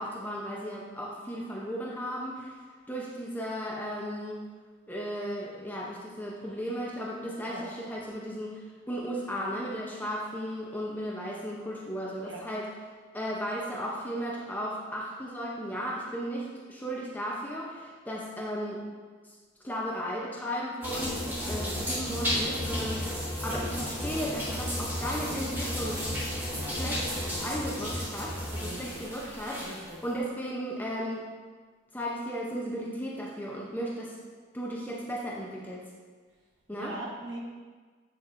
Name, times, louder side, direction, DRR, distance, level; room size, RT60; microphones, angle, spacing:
voice 1, 0.0-2.6 2.9-4.4 4.9-12.7 13.1-18.8 19.2-19.3 19.6-23.1 23.4-26.3 26.6-27.1 27.4-31.2 31.9-34.1 34.5-35.8 36.7-37.0, equal, 10° left, -4 dB, 0.7 m, -35 dB
sound 1, 20.8-29.9, equal, 10° right, 1.8 m, -33 dB
voice 2, 21.9-22.6 28.5-29.1 29.6-30.0 36.7-37.4, right 1 dB, 80° right, -2 dB, 1.3 m, -41 dB
7.8 x 6.5 x 2.6 m, 1.5 s
head